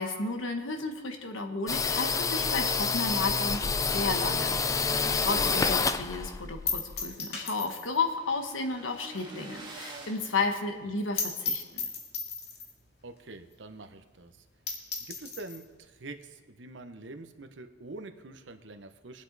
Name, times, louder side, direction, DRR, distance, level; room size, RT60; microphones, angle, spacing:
voice 1, 0.0-11.8, left 3 dB, 90° left, 5 dB, 1.3 m, -33 dB
sound 1, 1.7-7.1, left 4 dB, 15° left, 0.3 m, -28 dB
sound 2, 2.7-5.3 5.6-5.7 6.1-6.2 6.7-8.1 8.3-8.4 8.7-8.8 9.2-9.3 9.6-9.7 9.9-10.0 10.4-10.5 10.8-10.9 11.2-12.8 13.5-13.6 13.9-14.0 14.4-14.5 14.7-15.6, left 5 dB, 55° left, 2.2 m, -36 dB
voice 2, 5.0-5.6 10.7-10.9 13.0-14.4 15.1-19.2, right 2 dB, 70° right, 8 dB, 0.9 m, -45 dB
sound 3, 6.6-11.3, right 2 dB, 25° right, 1.7 m, -49 dB
21.5 x 8.3 x 4.0 m, 1.4 s
head